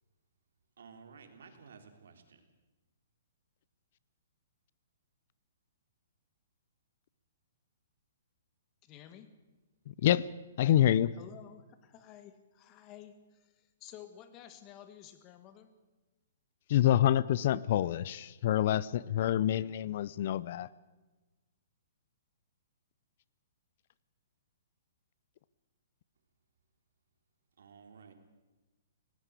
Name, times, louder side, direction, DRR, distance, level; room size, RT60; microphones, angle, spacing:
voice 1, 0.8-2.4 27.6-28.1, right 5 dB, 75° right, 6 dB, 3.7 m, -54 dB
voice 2, 8.8-9.3 10.8-15.7, left 10 dB, 25° left, 11 dB, 1.9 m, -52 dB
voice 3, 9.9-10.2 10.6-11.1 16.7-20.7, left 11 dB, 50° left, 20 dB, 0.6 m, -27 dB
18.0 x 18.0 x 8.4 m, 1.2 s
hypercardioid pair, 155°, 0 cm